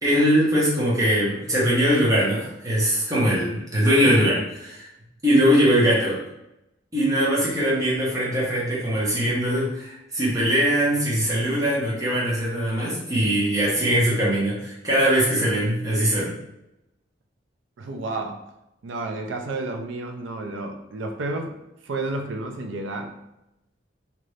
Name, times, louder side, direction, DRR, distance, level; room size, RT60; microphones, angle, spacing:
voice 1, 0.0-4.9 5.2-6.2 6.9-16.3, equal, 20° right, -7 dB, 1.1 m, -21 dB
voice 2, 17.8-18.4 18.8-21.5 21.8-23.2, right 2 dB, 80° right, 4 dB, 0.5 m, -31 dB
2.9 x 2.6 x 3.1 m, 0.88 s
head